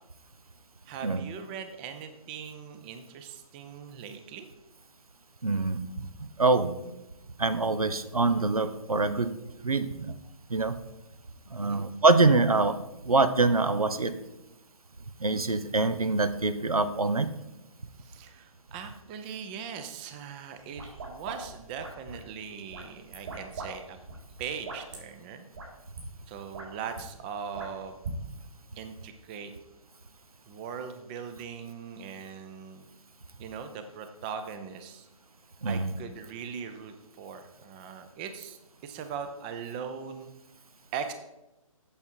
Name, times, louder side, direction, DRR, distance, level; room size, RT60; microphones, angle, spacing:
voice 1, 0.9-4.5 11.6-11.8 18.0-24.0 24.4-25.5 26.3-28.0 28.8-29.5 30.5-32.9 33.4-35.1 35.6-40.3 40.9-41.1, right 7 dB, 15° right, 8 dB, 0.5 m, -40 dB
voice 2, 5.4-5.8 6.4-6.7 7.4-9.3 9.6-10.1 10.5-10.7 11.5-12.8 13.0-14.1 15.2-17.3 35.6-35.9, right 3 dB, 90° right, 12 dB, 0.8 m, -24 dB
sound 1, 20.6-22.3 22.7-23.7 23.9-25.0 25.5-25.7 25.9-26.0 26.4-27.0 27.5-28.2, right 3 dB, 55° right, 3.7 m, -40 dB
8.4 x 6.9 x 4.5 m, 0.94 s
figure-of-eight pair, 145°, 18 cm